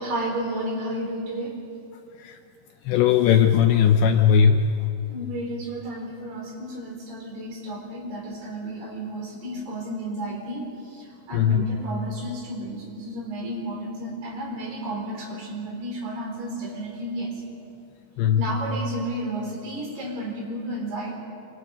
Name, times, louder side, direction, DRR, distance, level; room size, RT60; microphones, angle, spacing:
voice 1, 0.0-1.6 4.2-4.3 5.1-17.3 18.4-21.2, right 1 dB, 55° right, -1 dB, 6.3 m, -32 dB
voice 2, 2.9-4.6 11.3-11.6 18.2-18.4, left 8 dB, 80° left, 5 dB, 2.7 m, -18 dB
26.5 x 26.5 x 5.2 m, 2.4 s
omnidirectional pair, 5.7 m